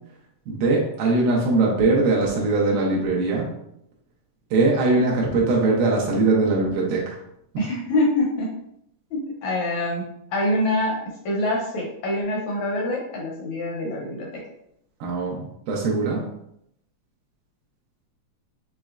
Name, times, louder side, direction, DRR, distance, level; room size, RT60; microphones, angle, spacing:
voice 1, 0.5-3.5 4.5-7.2 15.0-16.2, right 3 dB, 90° right, -2 dB, 2.5 m, -21 dB
voice 2, 7.6-8.5 9.1-11.0 11.2-14.3, left 1 dB, 75° left, -1 dB, 1.7 m, -25 dB
6.0 x 3.1 x 2.4 m, 0.76 s
omnidirectional pair, 4.0 m